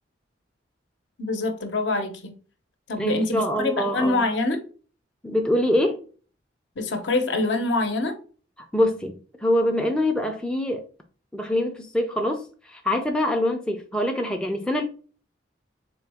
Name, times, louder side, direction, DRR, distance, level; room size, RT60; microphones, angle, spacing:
voice 1, 1.2-2.3 2.9-4.6 6.8-8.2, left 2 dB, 70° left, 0.8 m, -25 dB
voice 2, 3.0-4.2 5.2-6.0 8.7-9.1 9.4-10.8 11.3-12.4 12.7-14.8, left 1 dB, 5° left, 0.4 m, -24 dB
3.8 x 3.0 x 3.4 m
head